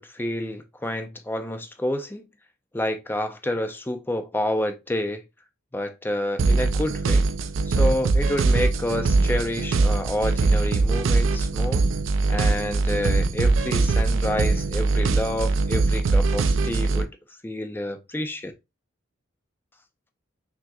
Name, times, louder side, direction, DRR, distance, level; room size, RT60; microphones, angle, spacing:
voice 1, 0.0-2.2 2.7-5.2 5.7-7.3 7.7-11.9 12.3-17.1 17.4-18.5, left 1 dB, 10° left, 0.5 m, -29 dB
sound 1, 6.4-17.0, right 3 dB, 70° right, 0.4 m, -22 dB
5.9 x 2.9 x 2.3 m
head